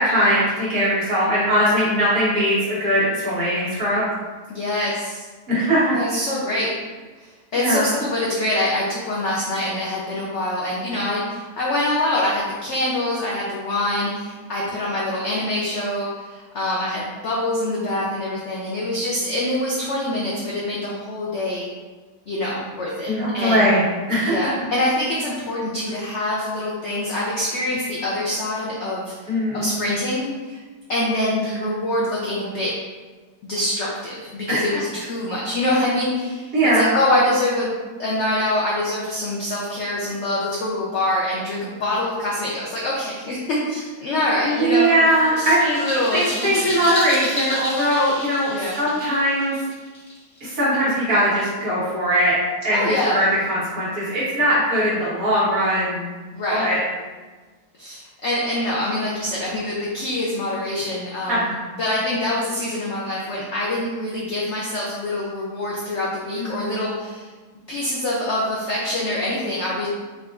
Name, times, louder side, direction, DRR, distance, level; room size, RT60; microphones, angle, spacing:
voice 1, 0.0-4.0 5.5-6.0 7.5-7.8 23.1-24.5 29.3-29.7 34.5-34.6 36.5-36.9 44.4-45.8 46.1-49.5 50.4-52.3 52.6-56.0 56.5-56.8 61.3-61.4 66.4-66.8, equal, 60° right, -9 dB, 1.5 m, -20 dB
voice 2, 4.5-5.3 5.9-6.7 7.2-21.7 22.3-23.7 24.2-30.6 30.9-32.7 33.4-37.7 38.0-45.0 45.3-46.7 47.8-48.0 48.5-48.8 52.7-53.2 56.3-56.7 57.8-61.5 61.8-67.3 67.7-69.9, left 1 dB, 70° left, -5 dB, 0.6 m, -25 dB
sound 1, 44.7-50.5, left 1 dB, 30° left, 1.0 m, -31 dB
4.7 x 2.4 x 2.4 m, 1.3 s
omnidirectional pair, 1.8 m